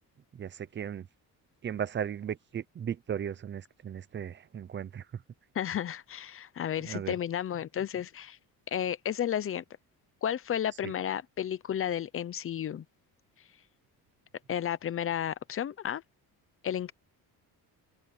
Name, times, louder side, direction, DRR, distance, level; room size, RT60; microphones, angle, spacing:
voice 1, 0.3-1.1 1.6-5.2 6.8-7.1 10.8-10.9, right 8 dB, 30° right, 0.7 m, -36 dB
voice 2, 5.5-8.4 8.7-9.6 10.2-12.8 14.5-16.0 16.6-16.9, left 10 dB, 35° left, 0.7 m, -32 dB
open air
cardioid pair, 165°, 39 cm